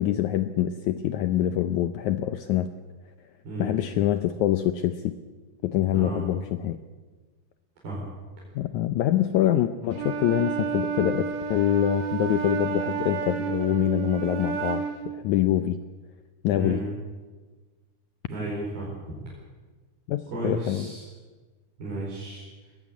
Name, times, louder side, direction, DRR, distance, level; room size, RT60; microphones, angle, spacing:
voice 1, 0.0-2.7 3.6-5.2 5.6-6.8 8.5-15.8 16.4-16.8 20.1-20.9, left 12 dB, 85° left, 10 dB, 1.7 m, -25 dB
voice 2, 5.9-6.2 7.8-8.1 16.5-16.8 18.3-18.9 20.3-21.0 21.8-22.4, right 2 dB, 90° right, -5 dB, 6.5 m, -33 dB
Wind instrument woodwind instrument, 9.9-15.1, right 7 dB, 50° right, 3.1 m, -30 dB
20.0 x 15.0 x 8.5 m, 1.3 s
omnidirectional pair, 4.2 m